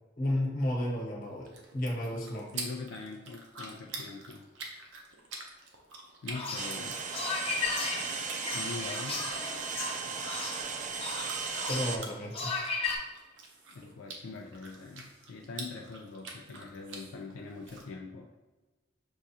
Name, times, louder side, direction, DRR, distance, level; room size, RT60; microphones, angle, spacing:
voice 1, 0.2-2.5 11.7-12.5, left 1 dB, 50° left, -3 dB, 1.1 m, -32 dB
sound 1, 1.2-17.8, right 3 dB, 75° right, 0.7 m, -47 dB
voice 2, 2.5-4.5 6.2-7.0 8.5-9.3 11.7-11.8 13.7-18.3, left 3 dB, 85° left, 0 dB, 0.4 m, -43 dB
sound 2, 6.3-13.0, left 4 dB, 30° left, 0.7 m, -36 dB
sound 3, 6.6-12.0, right 5 dB, 40° right, 0.3 m, -36 dB
6.2 x 2.4 x 2.7 m, 1.2 s
head